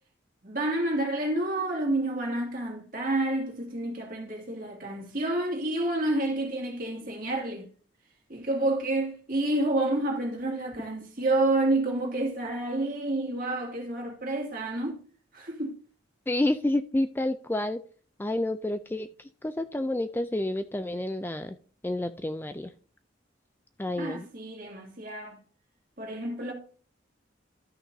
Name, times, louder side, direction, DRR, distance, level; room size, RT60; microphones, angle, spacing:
voice 1, 0.4-7.7 8.3-15.0 15.3-15.8 24.0-25.4 26.0-26.5, right 2 dB, 45° right, 2.3 m, -29 dB
voice 2, 16.3-17.8 18.2-19.1 19.4-21.5 21.8-22.7 23.8-24.3, left 1 dB, 10° left, 0.3 m, -29 dB
13.0 x 5.9 x 2.7 m
head